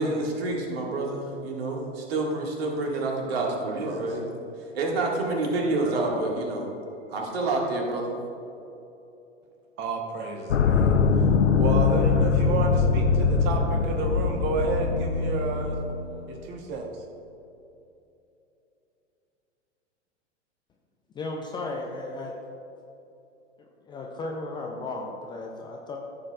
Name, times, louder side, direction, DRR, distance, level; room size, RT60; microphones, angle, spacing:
voice 1, 0.0-4.3 4.7-6.7 7.1-8.2, right 2 dB, 55° right, 0 dB, 1.8 m, -28 dB
voice 2, 3.3-4.1 5.8-6.2 9.8-11.3 11.6-15.8 16.3-16.9, right 3 dB, 30° right, 2 dB, 1.0 m, -31 dB
sound 1, 10.5-16.0, left 5 dB, 70° left, 0.6 m, -22 dB
voice 3, 21.1-22.4 23.6-26.0, left 2 dB, 10° left, 0 dB, 0.5 m, -35 dB
14.5 x 7.4 x 2.3 m, 2.8 s
figure-of-eight pair, 100°, 36 cm